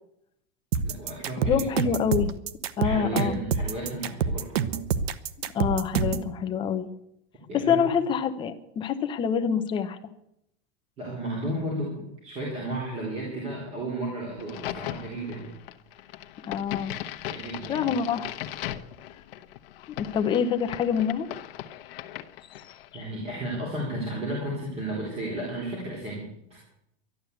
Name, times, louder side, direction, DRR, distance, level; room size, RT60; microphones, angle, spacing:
sound 1, 0.7-6.3, right 6 dB, 70° right, 1.1 m, -27 dB
voice 1, 0.8-1.7 2.8-4.5 7.5-7.9 11.0-15.5 15.9-16.2 17.3-17.9 22.9-26.6, right 1 dB, 20° right, -3 dB, 3.7 m, -33 dB
voice 2, 1.4-2.3 2.8-3.4 5.5-6.9 7.5-10.0 16.5-16.9 17.7-18.3 20.0-21.3 22.9-23.0, left 7 dB, 15° left, 7 dB, 0.8 m, -26 dB
Crack, 14.4-23.0, left 13 dB, 60° left, 1.1 m, -38 dB
12.5 x 12.0 x 8.0 m, 0.78 s
supercardioid pair, 175°, 32 cm